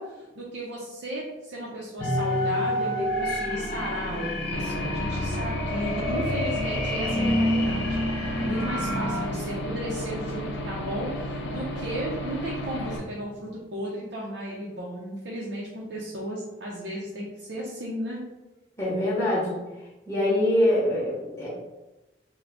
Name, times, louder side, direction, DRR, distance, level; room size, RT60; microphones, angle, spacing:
voice 1, 0.0-18.2, right 1 dB, 80° right, -5 dB, 0.6 m, -35 dB
sound 1, 2.0-9.3, left 1 dB, 45° left, 1.1 m, -27 dB
Aircraft / Engine, 4.5-13.0, equal, 70° left, 0.5 m, -34 dB
voice 2, 18.8-19.6 20.1-21.5, left 1 dB, 15° left, -7 dB, 0.8 m, -24 dB
3.4 x 2.2 x 3.7 m, 1.1 s
head